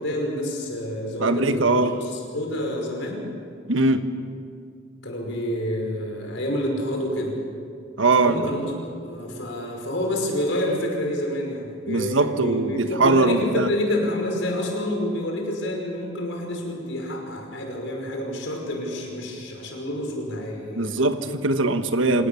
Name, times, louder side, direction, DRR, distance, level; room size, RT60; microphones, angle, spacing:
voice 1, 0.0-3.2 5.0-7.4 8.2-21.1, left 1 dB, 75° left, 1 dB, 5.6 m, -28 dB
voice 2, 1.2-1.9 3.7-4.1 8.0-8.4 11.9-13.7 20.8-22.3, right 2 dB, 80° right, 8 dB, 1.4 m, -21 dB
26.5 x 17.5 x 7.1 m, 2.3 s
head